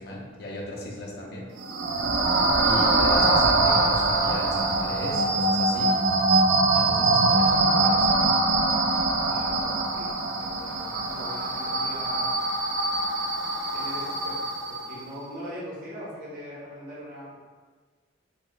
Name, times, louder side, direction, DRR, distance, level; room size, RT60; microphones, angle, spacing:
voice 1, 0.0-1.5 2.6-5.9 6.7-8.2, left 1 dB, 55° left, -2 dB, 0.7 m, -36 dB
sound 1, 1.6-15.0, right 2 dB, 80° right, 0.4 m, -23 dB
voice 2, 9.2-10.1 10.4-12.4 13.7-14.4 14.7-17.4, equal, 45° right, -8 dB, 0.9 m, -41 dB
4.0 x 3.0 x 2.3 m, 1.5 s
head